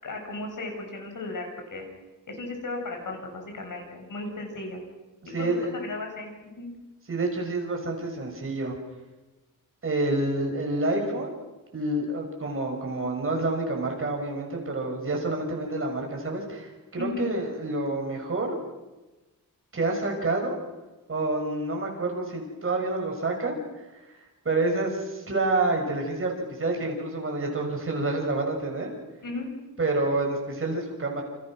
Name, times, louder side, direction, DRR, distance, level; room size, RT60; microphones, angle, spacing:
voice 1, 0.0-1.8 2.3-4.8 5.2-6.7 16.9-17.3 29.2-29.5, left 2 dB, 70° left, 3 dB, 6.7 m, -35 dB
voice 2, 5.3-5.7 7.1-8.7 9.8-11.4 11.7-18.6 19.7-20.6 21.1-23.6 24.4-28.9 29.8-31.2, right 2 dB, 40° right, 1 dB, 6.1 m, -28 dB
28.5 x 28.0 x 6.3 m, 1.1 s
wide cardioid pair, 165°, 33 cm